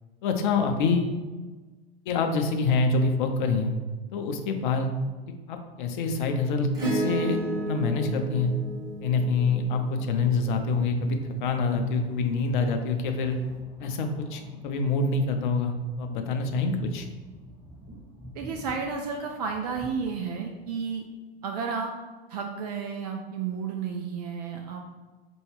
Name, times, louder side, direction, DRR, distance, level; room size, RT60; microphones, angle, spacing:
voice 1, 0.2-1.2 2.1-3.8 4.1-4.9 5.5-7.4 7.7-8.5 9.0-13.4 13.8-17.1, left 4 dB, 50° left, 5 dB, 0.6 m, -26 dB
Acoustic guitar / Strum, 6.7-11.3 13.2-13.3, right 2 dB, 10° right, 1.4 m, -33 dB
sound 1, 10.1-21.0, equal, 5° left, 1.2 m, -49 dB
voice 2, 18.3-21.0 21.4-21.9 22.3-25.0, right 5 dB, 40° right, 3 dB, 0.4 m, -32 dB
4.3 x 2.2 x 3.3 m, 1.3 s
figure-of-eight pair, 90°, 32 cm